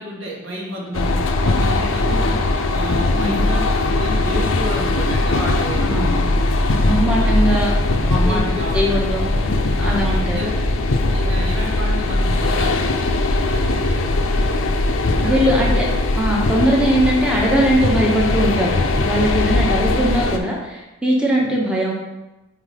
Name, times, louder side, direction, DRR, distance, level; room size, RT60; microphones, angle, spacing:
voice 1, 0.0-2.4 2.7-6.4 8.0-9.1 9.8-10.5 11.1-14.8 15.1-15.7 21.3-21.4, equal, 85° right, -3 dB, 1.6 m, -30 dB
sound 1, 0.9-20.4, left 2 dB, 85° left, 0.6 m, -19 dB
voice 2, 5.8-6.3 6.8-7.7 8.2-8.4 8.7-9.2 9.8-10.4 15.2-15.9 16.2-21.9, equal, 5° right, -3 dB, 0.8 m, -20 dB
4.9 x 3.9 x 4.9 m, 1.0 s
head